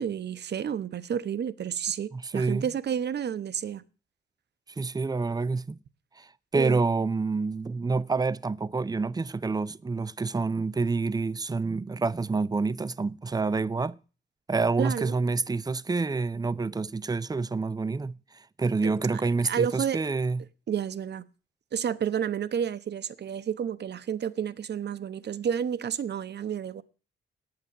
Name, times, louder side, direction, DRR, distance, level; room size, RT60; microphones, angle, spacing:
voice 1, 0.0-3.8 6.6-6.8 14.8-15.1 18.8-20.0 20.7-21.2 21.7-26.8, right 8 dB, 60° right, 0.9 m, -30 dB
voice 2, 2.1-2.6 4.8-5.8 6.2-14.0 14.5-20.4, right 4 dB, 20° right, 0.6 m, -28 dB
9.4 x 8.8 x 9.0 m
cardioid pair, 65°, 20 cm